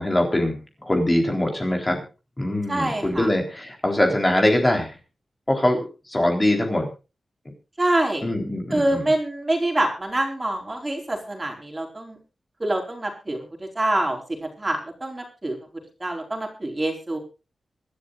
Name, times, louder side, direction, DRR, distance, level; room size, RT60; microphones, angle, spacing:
voice 1, 0.0-2.0 2.4-5.0 5.5-6.9 8.2-9.0, left 1 dB, 20° left, 2 dB, 3.8 m, -22 dB
voice 2, 2.7-3.3 7.8-8.2 8.7-12.2 12.6-15.6 16.0-17.2, right 1 dB, 20° right, 2 dB, 4.6 m, -25 dB
25.5 x 12.0 x 2.5 m, 0.31 s
wide cardioid pair, 135°, 0 cm